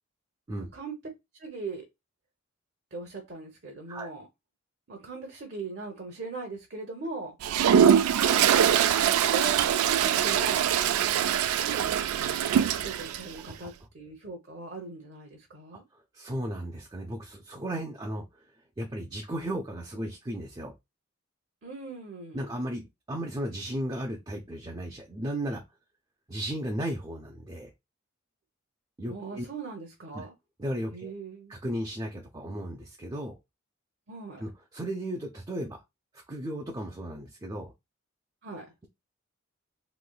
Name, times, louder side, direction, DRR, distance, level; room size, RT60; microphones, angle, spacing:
voice 1, 0.6-0.9 1.4-1.9 2.9-4.3 4.9-7.3 8.2-8.9 9.3-10.7 11.6-12.0 12.6-15.8 21.6-22.6 29.1-30.3 30.9-31.6 34.1-34.4 38.4-38.7, right 3 dB, 50° right, 0.8 m, -39 dB
Toilet flush, 7.4-13.2, right 9 dB, 90° right, 0.3 m, -23 dB
voice 2, 15.9-18.4 18.8-20.7 22.3-25.6 26.3-27.7 29.0-29.5 30.1-30.3 30.6-31.1 31.5-33.3 34.4-35.8 36.1-37.7, right 1 dB, 20° right, 0.4 m, -35 dB
3.1 x 3.0 x 2.3 m
head